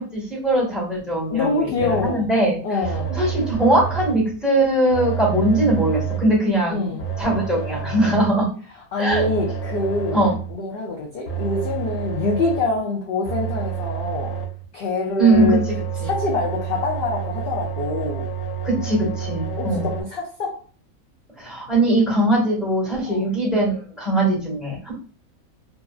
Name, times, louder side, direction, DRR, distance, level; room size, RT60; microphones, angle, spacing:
voice 1, 0.0-2.6 3.1-6.8 7.2-8.5 9.0-9.2 10.1-10.3 15.2-16.1 18.6-19.9 21.4-24.9, right 1 dB, ahead, -5 dB, 1.2 m, -20 dB
voice 2, 1.3-2.3 2.6-3.1 6.7-7.1 8.9-10.2 10.5-14.4 14.7-15.6 16.0-18.2 19.6-20.5 23.1-23.3, left 3 dB, 65° left, -2 dB, 0.6 m, -25 dB
sound 1, 1.8-2.3 2.8-4.3 4.9-6.4 7.0-8.5 9.1-10.5 11.3-12.8 13.3-14.7 15.3-20.0, right 7 dB, 85° left, 1.2 m, -29 dB
2.8 x 2.4 x 2.3 m, 0.41 s
omnidirectional pair, 1.5 m